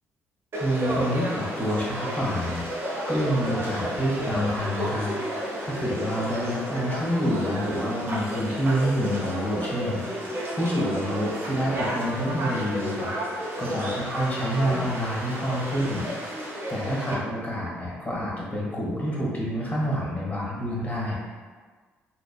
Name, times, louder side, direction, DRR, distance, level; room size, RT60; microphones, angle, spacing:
Conversation / Crowd, 0.5-17.1, equal, 45° right, 0.7 m, -32 dB
voice 1, 0.6-2.7 3.1-5.1 5.6-13.1 13.6-16.1 16.3-21.2, equal, 25° left, -5 dB, 1.3 m, -28 dB
3.8 x 2.2 x 2.3 m, 1.5 s
hypercardioid pair, 45°, 6 cm